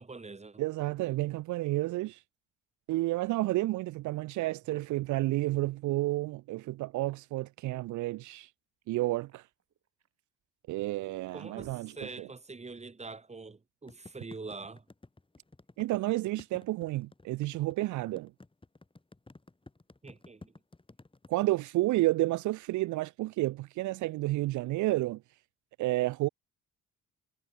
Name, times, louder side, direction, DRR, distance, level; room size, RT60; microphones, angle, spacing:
voice 1, 0.0-0.6 11.3-14.8 20.0-20.5, right 3 dB, 20° right, 2.8 m, -44 dB
voice 2, 0.6-2.2 2.9-8.5 8.9-9.5 10.7-12.3 15.8-18.3 21.3-25.2 25.8-26.3, right 18 dB, 75° right, 0.5 m, -31 dB
sound 1, 4.5-5.3 6.7-7.5 8.8-10.2 10.8-10.9 11.2-12.4, right 8 dB, 55° right, 5.2 m, -57 dB
sound 2, 13.9-21.5, left 2 dB, 15° left, 6.3 m, -53 dB
cardioid pair, 90°, 30 cm